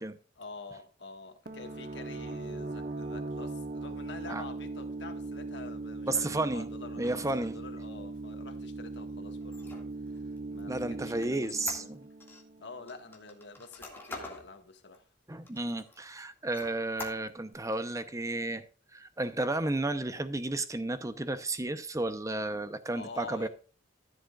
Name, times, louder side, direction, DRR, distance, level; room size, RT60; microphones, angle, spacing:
voice 1, 0.4-9.8 10.1-11.9 12.6-15.1 22.9-23.5, left 3 dB, 70° left, 1.6 m, -47 dB
sound 1, 1.5-13.0, right 3 dB, 50° right, 1.0 m, -39 dB
voice 2, 6.1-6.7 7.0-7.6 10.7-12.1 15.3-18.6 18.9-23.5, right 2 dB, 15° right, 0.7 m, -32 dB
Squeak, 9.4-12.4 12.9-14.5 14.9-15.0 15.4-16.1 16.5-17.5, left 2 dB, 10° left, 2.0 m, -44 dB
14.0 x 7.9 x 2.4 m
head